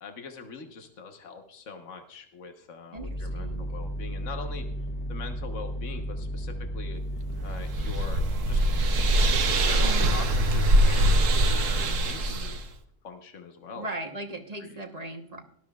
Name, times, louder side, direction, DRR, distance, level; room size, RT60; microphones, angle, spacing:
voice 1, 0.0-4.7 5.1-7.0 7.4-8.6 9.4-12.6 13.0-13.9 14.6-14.8, left 4 dB, 75° left, 5 dB, 1.5 m, -42 dB
voice 2, 2.9-3.7 9.8-10.2 13.7-15.4, right 2 dB, 30° right, 5 dB, 1.2 m, -38 dB
sound 1, 3.0-9.5, right 1 dB, 20° left, 2.1 m, -34 dB
sound 2, 7.3-12.7, right 1 dB, 85° right, 1.4 m, -23 dB
18.0 x 12.5 x 2.4 m, 0.63 s
omnidirectional pair, 1.3 m